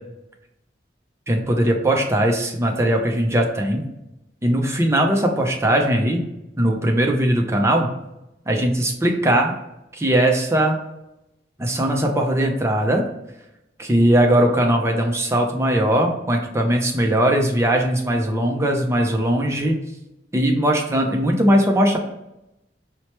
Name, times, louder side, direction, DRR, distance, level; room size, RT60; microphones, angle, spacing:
voice 1, 1.3-3.9 4.4-6.2 6.6-7.9 8.5-9.5 9.9-10.8 11.6-13.0 13.8-19.8 20.3-22.0, right 1 dB, 15° right, 2 dB, 0.6 m, -19 dB
4.4 x 2.1 x 3.0 m, 0.89 s
head